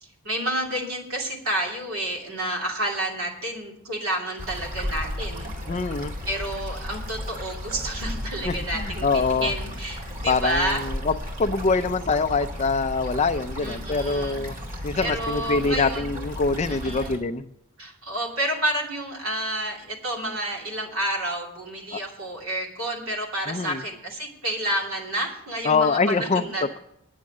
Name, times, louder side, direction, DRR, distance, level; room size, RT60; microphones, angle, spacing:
voice 1, 0.2-5.5 6.3-10.8 13.6-14.4 15.0-16.1 16.7-17.3 17.8-26.8, right 1 dB, 85° right, 0 dB, 2.7 m, -30 dB
sound 1, 4.4-17.2, equal, 40° right, 2.3 m, -34 dB
voice 2, 5.7-6.1 8.4-9.5 10.3-11.1 11.4-14.5 14.8-17.5 21.9-22.0 23.5-23.8 25.6-26.8, left 4 dB, 30° left, 10 dB, 0.4 m, -24 dB
9.6 x 7.2 x 7.7 m, 0.80 s
head